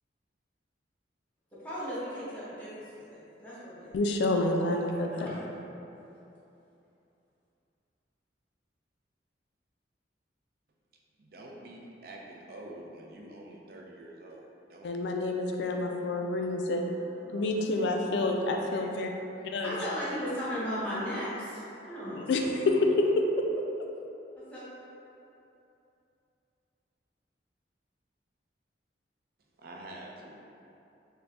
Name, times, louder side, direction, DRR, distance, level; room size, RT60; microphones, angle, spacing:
voice 1, 1.5-4.0 4.8-5.4 16.9-18.6 19.6-22.7 24.3-24.6, equal, 10° left, -11 dB, 1.0 m, -38 dB
voice 2, 3.9-5.3 14.8-16.9 17.3-19.1 19.5-19.7 22.1-23.1, left 2 dB, 70° left, 2 dB, 0.3 m, -28 dB
voice 3, 11.2-14.9 29.6-30.4, right 1 dB, 55° right, -2 dB, 0.5 m, -47 dB
3.7 x 2.2 x 3.4 m, 2.9 s
head